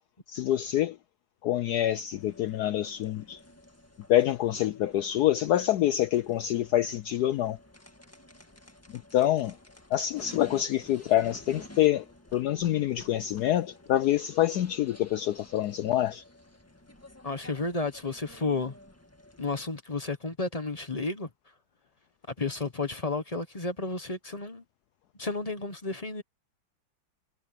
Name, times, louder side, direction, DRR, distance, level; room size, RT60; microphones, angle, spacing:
voice 1, 0.3-1.0 1.4-3.4 4.1-7.6 8.9-9.5 9.9-12.0 12.3-16.2, left 12 dB, 75° left, 0.9 m, -26 dB
sound 1, 2.1-19.6, left 1 dB, 10° left, 1.4 m, -52 dB
voice 2, 17.2-18.8 19.4-21.3 22.4-24.6 25.2-26.2, left 3 dB, 25° left, 1.0 m, -32 dB
omnidirectional pair, 2.2 m